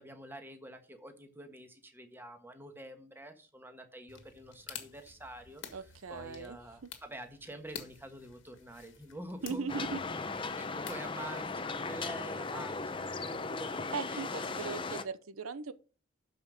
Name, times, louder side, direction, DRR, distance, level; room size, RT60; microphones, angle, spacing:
voice 1, 0.0-9.7 10.3-15.1, right 1 dB, 10° right, 1.4 m, -47 dB
sound 1, 4.1-11.9, left 7 dB, 65° left, 1.7 m, -51 dB
voice 2, 5.7-6.6 9.4-10.0 13.9-15.7, right 5 dB, 90° right, 0.7 m, -38 dB
sound 2, 9.7-15.0, left 3 dB, 25° left, 0.6 m, -37 dB
12.5 x 5.2 x 5.1 m
head